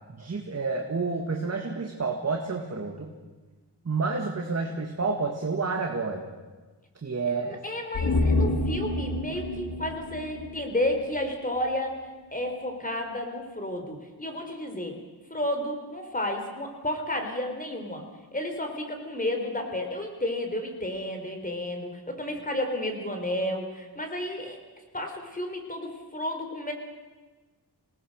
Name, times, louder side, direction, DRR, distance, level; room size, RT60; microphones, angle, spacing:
voice 1, 0.1-3.1 3.8-6.3 7.0-7.6, right 4 dB, 35° right, 1 dB, 2.0 m, -29 dB
voice 2, 7.5-11.9 12.3-15.0 15.3-18.0 18.3-24.6 24.9-26.7, left 1 dB, 20° left, 4 dB, 3.7 m, -31 dB
sound 1, 7.9-11.3 11.6-11.7, left 2 dB, 80° left, 2.9 m, -28 dB
26.5 x 18.5 x 6.6 m, 1.3 s
wide cardioid pair, 120°, 42 cm